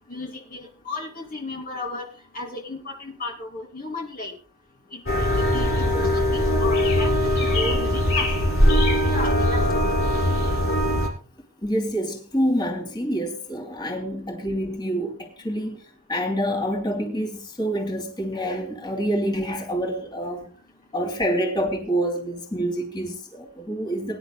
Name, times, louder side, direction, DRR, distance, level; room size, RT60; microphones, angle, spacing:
voice 1, 0.1-2.1 2.3-4.4 4.9-8.3 9.0-9.7, left 2 dB, 40° left, 2.6 m, -34 dB
sound 1, 5.1-11.1, left 1 dB, 60° left, 5.1 m, -21 dB
voice 2, 11.6-15.8 16.1-20.5 20.9-24.2, equal, 20° left, 2.9 m, -27 dB
23.0 x 10.5 x 2.2 m
head